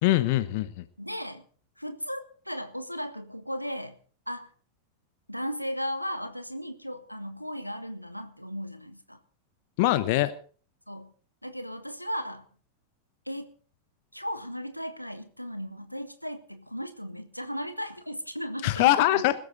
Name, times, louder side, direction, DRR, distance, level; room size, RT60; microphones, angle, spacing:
voice 1, 0.0-0.8 9.8-10.3 18.6-19.3, left 15 dB, 50° left, 15 dB, 1.0 m, -23 dB
voice 2, 1.0-1.4 1.8-4.0 4.3-4.5 5.3-9.2 10.9-11.1 11.4-12.4 13.2-13.5 14.1-19.2, equal, 90° left, 10 dB, 1.6 m, -36 dB
21.0 x 13.0 x 4.0 m, 0.41 s
figure-of-eight pair, 90°, 0 cm